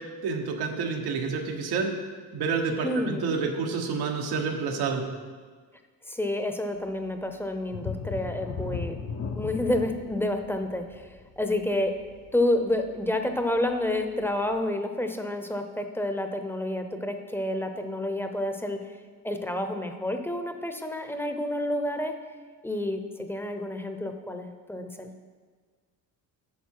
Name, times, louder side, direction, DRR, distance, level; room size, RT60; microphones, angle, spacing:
voice 1, 0.2-1.9 2.3-5.0, right 5 dB, 85° right, 3 dB, 1.3 m, -29 dB
voice 2, 2.8-3.2 6.1-9.0 9.4-12.0 12.3-18.9 19.2-22.1 22.6-25.1, left 1 dB, 5° left, 5 dB, 0.8 m, -29 dB
sound 1, 7.7-13.1 13.6-13.7 14.2-14.3, left 5 dB, 40° left, 0.7 m, -36 dB
9.4 x 6.4 x 4.7 m, 1.5 s
cardioid pair, 95°, 37 cm